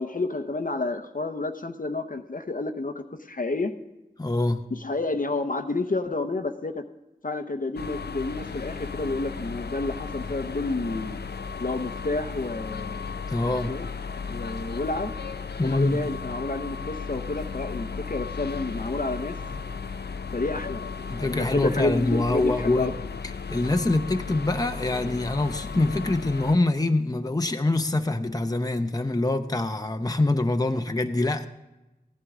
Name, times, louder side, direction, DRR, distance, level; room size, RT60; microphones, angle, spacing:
voice 1, 0.0-3.8 4.7-6.8 7.2-11.2 11.6-13.0 13.5-13.9 14.3-15.1 15.6-19.4 20.3-22.9, left 2 dB, 55° left, 7 dB, 0.9 m, -30 dB
voice 2, 4.2-4.6 13.3-13.7 15.6-16.0 21.1-22.9 23.5-31.5, left 2 dB, 20° left, 6 dB, 0.7 m, -25 dB
sound 1, 7.8-26.6, left 5 dB, 90° left, 0.5 m, -35 dB
15.5 x 11.0 x 3.7 m, 0.99 s
wide cardioid pair, 55°, 17 cm